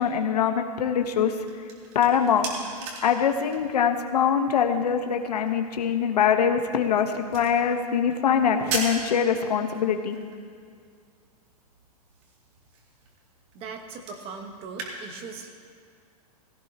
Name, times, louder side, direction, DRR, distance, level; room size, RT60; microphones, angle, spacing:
voice 1, 0.0-1.3 1.9-2.5 3.0-10.2, left 7 dB, 85° left, 5 dB, 1.1 m, -23 dB
sound 1, 1.2-14.9, right 3 dB, 45° right, 2.5 m, -41 dB
voice 2, 13.5-15.5, right 5 dB, 30° right, 5 dB, 1.2 m, -39 dB
16.5 x 16.0 x 2.9 m, 2.1 s
hypercardioid pair, 145°, 20 cm